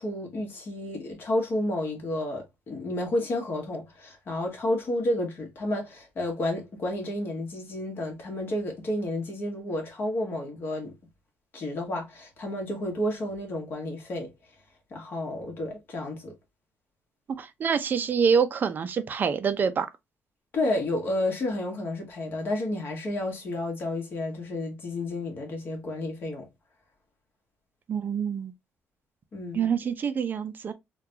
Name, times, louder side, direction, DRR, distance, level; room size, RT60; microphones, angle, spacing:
voice 1, 0.0-10.9 11.5-14.3 14.9-16.3 20.5-26.5 29.3-29.7, left 1 dB, 50° left, 1.4 m, -31 dB
voice 2, 17.4-19.9 27.9-28.5 29.5-30.7, right 6 dB, 45° right, 0.5 m, -26 dB
3.7 x 2.4 x 2.8 m
cardioid pair, 115°, 5 cm